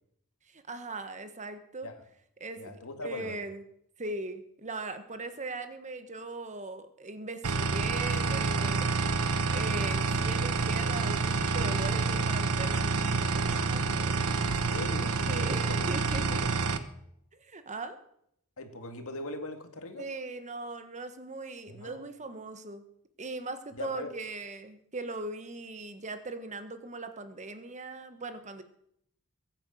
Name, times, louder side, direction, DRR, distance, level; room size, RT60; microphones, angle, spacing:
voice 1, 0.5-1.9 2.4-3.6 4.0-8.9 9.2-14.4 15.3-16.2 17.4-18.0 20.0-22.8 23.2-28.6, right 3 dB, 35° right, 9 dB, 1.4 m, -39 dB
voice 2, 2.6-3.4 14.4-15.4 15.7-15.9 16.3-16.5 18.6-20.1 21.7-22.0 23.7-24.1, left 2 dB, 70° left, 6 dB, 2.1 m, -40 dB
sound 1, 7.4-16.8, right 4 dB, 75° right, 1.1 m, -28 dB
22.5 x 8.9 x 6.5 m, 0.73 s
head